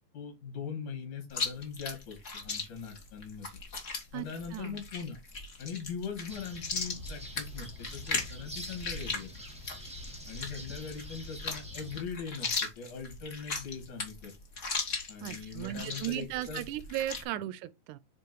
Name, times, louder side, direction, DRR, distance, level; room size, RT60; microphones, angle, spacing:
voice 1, 0.1-3.5 4.1-5.2 5.6-9.3 10.3-14.3 15.1-16.6, left 6 dB, 80° left, 3.8 m, -41 dB
Chewing mastication, 1.3-17.2, left 4 dB, 35° left, 1.4 m, -38 dB
voice 2, 4.1-4.8 15.2-18.0, right 13 dB, 85° right, 2.0 m, -36 dB
sound 1, 6.3-12.0, equal, 5° right, 0.9 m, -45 dB
7.5 x 3.0 x 4.5 m
omnidirectional pair, 3.5 m